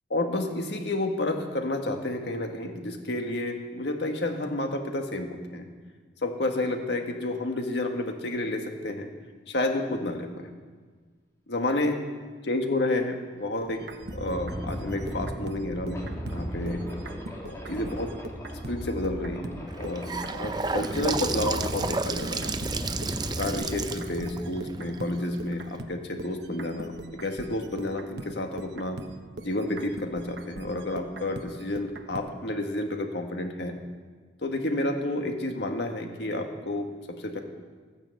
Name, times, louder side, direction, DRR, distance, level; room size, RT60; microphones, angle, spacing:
voice 1, 0.1-5.7 6.2-9.1 9.5-10.5 11.5-12.0 12.4-13.9 14.1-16.8 17.4-18.1 18.7-19.5 19.8-22.7 23.4-29.0 29.4-33.8 34.4-37.4, left 1 dB, 75° left, 4 dB, 1.7 m, -30 dB
sound 1, 13.8-23.5, equal, 15° left, 2.2 m, -36 dB
sound 2, 13.8-19.6 19.8-32.3, right 2 dB, 70° right, 1.0 m, -42 dB
Gurgling / Sink (filling or washing) / Bathtub (filling or washing), 19.7-25.8, right 4 dB, 25° right, 0.5 m, -32 dB
13.5 x 10.0 x 7.7 m, 1.5 s
head